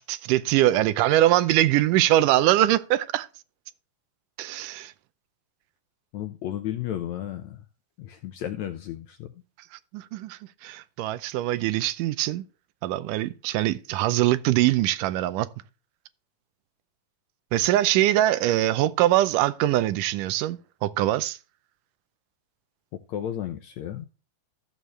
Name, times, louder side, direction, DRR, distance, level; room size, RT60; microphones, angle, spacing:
voice 1, 0.1-3.3 4.4-4.9 9.9-12.4 12.8-15.5 17.5-21.4, right 14 dB, 80° right, 2.1 m, -23 dB
voice 2, 6.1-7.6 8.0-9.3 22.9-24.1, left 11 dB, 80° left, 1.7 m, -33 dB
14.5 x 6.6 x 3.1 m
omnidirectional pair, 4.1 m